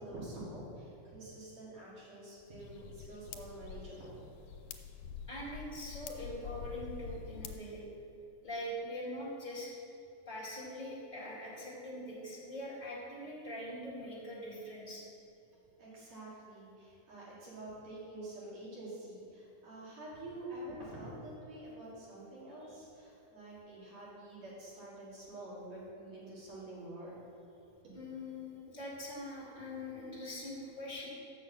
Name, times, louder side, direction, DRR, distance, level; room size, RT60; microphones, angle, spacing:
voice 1, 0.0-4.2 15.8-27.1 27.8-28.0, right 1 dB, 60° right, -8 dB, 3.4 m, -47 dB
sound 1, 2.6-7.6, left 7 dB, 90° left, 2.1 m, -47 dB
voice 2, 5.3-7.8 8.4-9.7 10.3-15.0 27.9-31.1, left 1 dB, 15° left, -7 dB, 1.8 m, -43 dB
6.4 x 6.2 x 7.3 m, 2.7 s
omnidirectional pair, 3.5 m